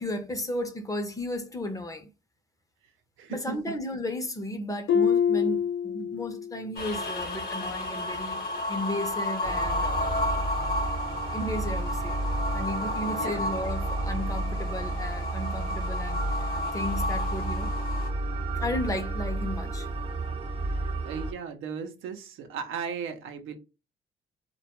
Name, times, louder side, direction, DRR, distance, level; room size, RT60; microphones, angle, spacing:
voice 1, 0.0-2.1 3.3-10.4 11.3-12.2 12.5-17.7 18.6-19.9, left 1 dB, 15° left, 0.6 m, -34 dB
voice 2, 3.2-3.8 13.0-13.5 20.6-23.6, right 6 dB, 85° right, 0.6 m, -37 dB
Harp, 4.9-6.6 7.0-7.4 8.0-8.1, left 7 dB, 80° left, 0.5 m, -26 dB
sound 1, 6.8-18.1, left 2 dB, 50° left, 1.0 m, -32 dB
sound 2, 9.4-21.3, right 2 dB, 30° right, 0.5 m, -31 dB
2.2 x 2.1 x 2.8 m
cardioid pair, 90°, 20 cm